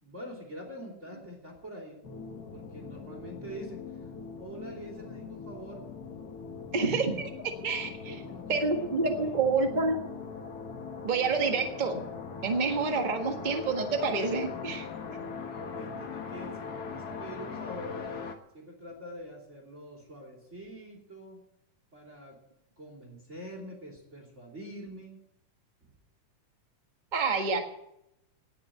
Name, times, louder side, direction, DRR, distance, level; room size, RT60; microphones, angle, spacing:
voice 1, 0.0-2.0 2.5-4.1 4.4-5.8 7.9-9.4 14.6-18.1 18.5-21.4 21.9-22.4 22.8-25.2 25.8-25.9, equal, 20° right, 1 dB, 3.0 m, -45 dB
sound 1, 2.0-18.4, left 5 dB, 70° left, 0.9 m, -41 dB
voice 2, 6.7-7.2 7.6-8.1 8.5-10.0 11.0-12.0 12.4-14.9 27.1-27.6, right 4 dB, 85° right, 4 dB, 0.4 m, -28 dB
19.0 x 6.8 x 9.0 m, 0.84 s
omnidirectional pair, 3.8 m